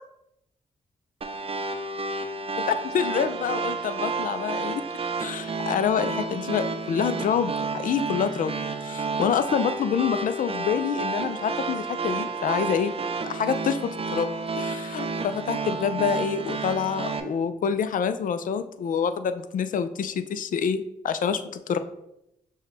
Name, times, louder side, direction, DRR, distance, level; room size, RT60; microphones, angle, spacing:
sound 1, 1.2-17.2, right 4 dB, 40° right, 0.5 m, -31 dB
voice 1, 2.6-4.8 5.2-8.5 8.8-12.9 13.3-21.8, left 7 dB, 60° left, 11 dB, 0.4 m, -27 dB
6.3 x 2.2 x 3.3 m, 0.82 s
supercardioid pair, 45°, 15 cm